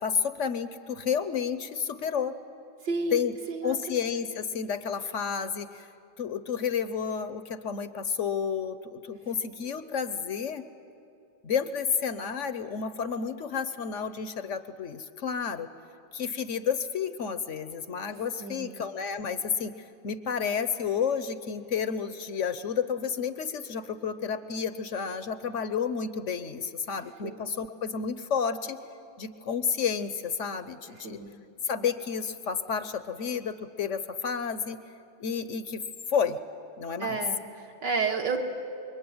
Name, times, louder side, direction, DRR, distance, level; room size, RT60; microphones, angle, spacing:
voice 1, 0.0-2.3 3.1-3.3 3.6-5.9 6.2-10.7 11.4-15.7 16.1-19.7 20.0-28.8 29.2-31.2 31.6-34.8 35.2-35.8 36.1-36.4 36.8-37.2, left 6 dB, 55° left, 12 dB, 0.9 m, -31 dB
voice 2, 2.8-3.2 3.5-4.0 9.4-9.6 18.4-18.8 27.2-27.3 31.0-31.3 37.0-38.4, right 4 dB, 65° right, 1 dB, 2.6 m, -31 dB
26.5 x 22.5 x 9.6 m, 2.6 s
omnidirectional pair, 2.1 m